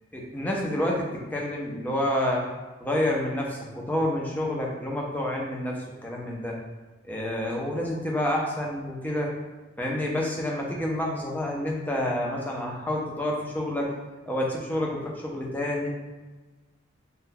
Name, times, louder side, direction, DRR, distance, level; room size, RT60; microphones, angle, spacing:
voice 1, 0.1-2.5 2.8-6.6 7.0-9.3 9.8-13.9 14.3-15.9, left 1 dB, 10° left, -2 dB, 0.4 m, -28 dB
2.7 x 2.2 x 3.7 m, 1.2 s
head